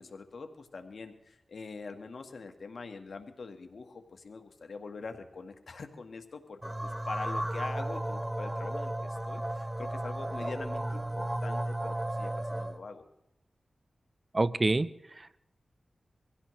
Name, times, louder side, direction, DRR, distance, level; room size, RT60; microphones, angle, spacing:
voice 1, 0.0-13.0, left 4 dB, 75° left, 6 dB, 1.4 m, -44 dB
sound 1, 6.6-12.8, right 1 dB, 15° right, 1.0 m, -34 dB
voice 2, 14.3-15.4, right 2 dB, 40° right, 15 dB, 0.6 m, -28 dB
24.0 x 16.0 x 3.1 m, 0.83 s
cardioid pair, 45°, 0 cm